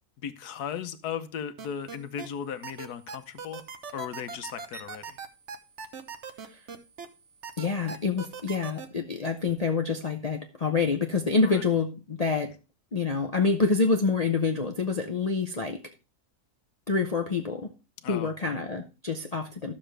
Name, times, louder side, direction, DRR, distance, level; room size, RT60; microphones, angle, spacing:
voice 1, 0.2-3.6 3.9-5.2 11.4-11.6 18.0-18.5, left 8 dB, 80° left, 11 dB, 1.4 m, -36 dB
sound 1, 1.6-2.3 2.6-7.1 7.4-8.9, right 5 dB, 50° right, 1.2 m, -39 dB
voice 2, 7.6-12.5 12.9-15.8 16.9-17.7 18.1-19.7, left 4 dB, 35° left, 4 dB, 0.7 m, -27 dB
12.5 x 7.1 x 3.3 m, 0.31 s
omnidirectional pair, 1.6 m